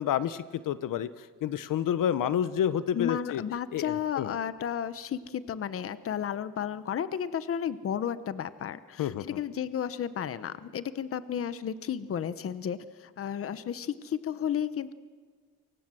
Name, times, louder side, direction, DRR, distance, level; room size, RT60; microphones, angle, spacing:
voice 1, 0.0-3.4 3.7-4.4 9.0-9.4, left 10 dB, 70° left, 15 dB, 0.9 m, -29 dB
voice 2, 2.9-14.9, left 8 dB, 40° left, 14 dB, 0.9 m, -33 dB
28.0 x 24.0 x 7.7 m, 1.5 s
cardioid pair, 160°, 34 cm